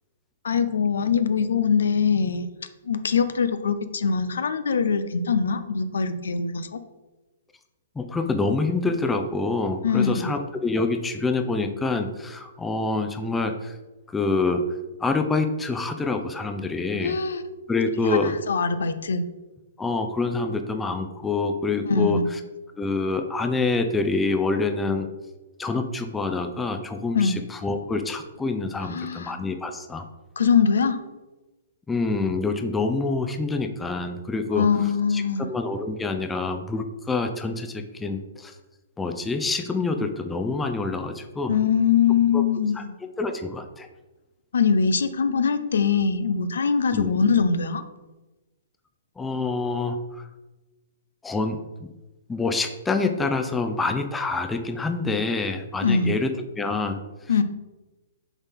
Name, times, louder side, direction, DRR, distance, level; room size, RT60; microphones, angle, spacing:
voice 1, 0.4-2.5 2.8-6.8 9.8-10.3 17.0-17.4 18.0-19.3 21.8-22.4 27.1-27.4 28.9-29.4 30.4-31.0 34.5-35.5 41.5-43.0 44.5-47.8 55.8-56.2 57.3-57.4, left 6 dB, 75° left, 11 dB, 0.5 m, -22 dB
voice 2, 8.0-13.8 14.1-14.7 15.0-17.2 17.7-18.3 19.8-22.4 22.8-25.1 25.6-30.0 31.9-34.7 35.1-38.5 39.0-41.6 42.3-42.4 42.7-43.9 46.9-47.1 49.2-50.3 51.2-51.9 52.3-57.0, left 3 dB, 10° left, 6 dB, 0.5 m, -26 dB
7.0 x 4.1 x 3.6 m, 1.1 s
hypercardioid pair, 125°, 0 cm